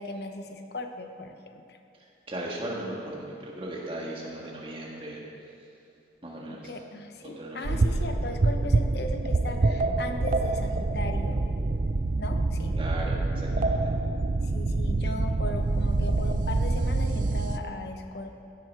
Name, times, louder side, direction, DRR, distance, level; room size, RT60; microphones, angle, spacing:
voice 1, 0.0-1.8 6.5-11.4 12.2-12.8 14.4-18.4, left 2 dB, 65° left, 6 dB, 0.9 m, -37 dB
voice 2, 2.3-5.2 6.2-6.7 7.2-7.7 12.7-13.8, right 1 dB, 30° right, -3 dB, 1.9 m, -37 dB
sound 1, 7.6-17.6, right 2 dB, 45° right, 0.4 m, -26 dB
15.5 x 7.9 x 4.7 m, 2.7 s
head